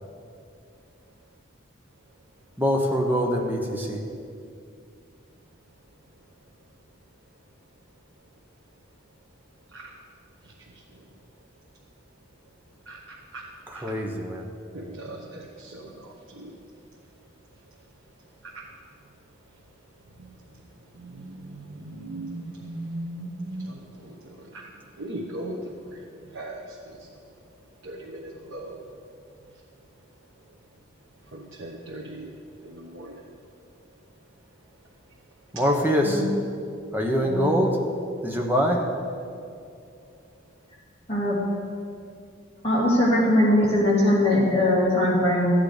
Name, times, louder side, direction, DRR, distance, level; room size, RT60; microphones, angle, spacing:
voice 1, 2.6-4.0 13.7-14.5 35.5-36.2 36.9-37.7 38.2-38.8, equal, 10° right, 0 dB, 1.1 m, -24 dB
voice 2, 10.4-11.0 12.9-13.4 13.7-13.9 14.7-16.5 18.4-18.6 20.1-20.4 20.9-27.1 27.8-28.8 31.3-32.3 32.6-33.3, right 1 dB, 85° right, -2 dB, 1.1 m, -39 dB
voice 3, 37.2-37.6 41.1-41.4 42.6-45.5, left 1 dB, 30° left, -7 dB, 3.2 m, -21 dB
13.5 x 8.8 x 5.1 m, 2.5 s
head